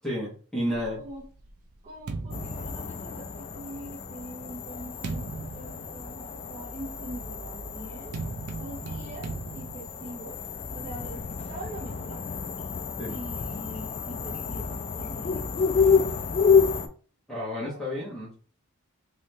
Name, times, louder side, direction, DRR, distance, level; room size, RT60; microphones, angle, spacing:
voice 1, 0.0-1.0 13.0-13.2 17.3-18.4, equal, ahead, -6 dB, 1.2 m, -31 dB
sound 1, 0.7-3.5 4.3-11.3, right 3 dB, 80° right, 0.5 m, -40 dB
voice 2, 0.9-1.2 1.8-8.2 8.6-9.3 9.5-10.4 10.7-12.2 13.1-15.6 17.6-18.1, right 1 dB, 30° right, -7 dB, 0.9 m, -43 dB
sound 2, 2.3-16.9, left 5 dB, 30° left, 0.3 m, -29 dB
3.0 x 2.7 x 3.3 m, 0.41 s
head